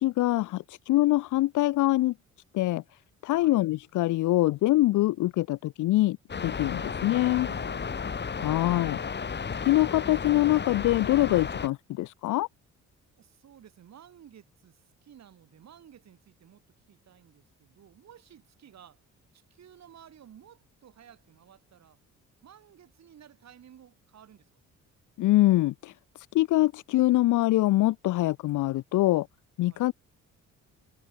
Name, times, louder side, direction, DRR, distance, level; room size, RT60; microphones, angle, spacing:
voice 1, 0.0-2.1 2.5-2.8 3.2-7.5 8.4-9.0 9.6-12.5 25.2-29.3 29.6-29.9, left 17 dB, 80° left, 0.8 m, -24 dB
sound 1, 6.3-11.7, left 6 dB, 35° left, 2.5 m, -33 dB
voice 2, 6.5-9.0 13.2-16.6 16.9-19.0 19.3-22.0 22.4-24.5 29.7-29.8, right 9 dB, 60° right, 7.7 m, -54 dB
cardioid pair, 90°, 30 cm